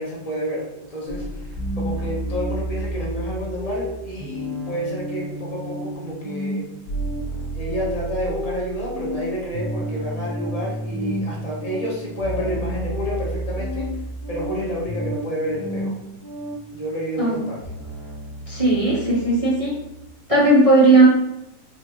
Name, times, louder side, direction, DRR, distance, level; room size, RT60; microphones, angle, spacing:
voice 1, 0.0-6.6 7.5-13.9 14.3-16.0 16.7-17.6, equal, 55° left, -4 dB, 0.4 m, -29 dB
sound 1, 1.1-16.7 17.6-20.0, right 1 dB, 30° left, 0.8 m, -30 dB
voice 2, 18.5-19.7 20.3-21.0, right 2 dB, 40° right, -7 dB, 0.5 m, -16 dB
4.2 x 2.5 x 3.0 m, 0.87 s
omnidirectional pair, 1.8 m